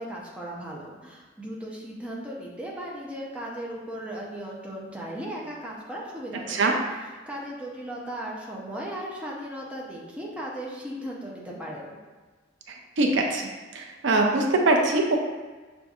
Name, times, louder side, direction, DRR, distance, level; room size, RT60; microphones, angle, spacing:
voice 1, 0.0-12.0, right 1 dB, 5° right, -4 dB, 0.6 m, -37 dB
voice 2, 13.0-13.5 13.7-15.2, right 2 dB, 75° right, 2 dB, 0.5 m, -22 dB
6.5 x 2.6 x 2.3 m, 1.3 s
head